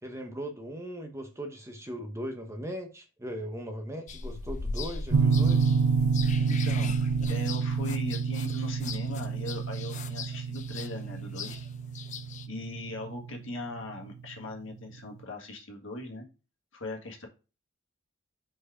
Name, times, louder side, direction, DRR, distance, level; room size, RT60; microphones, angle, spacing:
voice 1, 0.0-5.7, equal, 15° right, 0.8 m, -38 dB
sound 1, 4.1-12.5, left 4 dB, 35° left, 0.5 m, -40 dB
sound 2, 5.1-13.8, right 5 dB, 80° right, 0.6 m, -28 dB
voice 2, 6.4-11.6 12.5-16.3 16.7-17.3, left 2 dB, 60° left, 1.7 m, -39 dB
5.1 x 4.6 x 4.9 m
head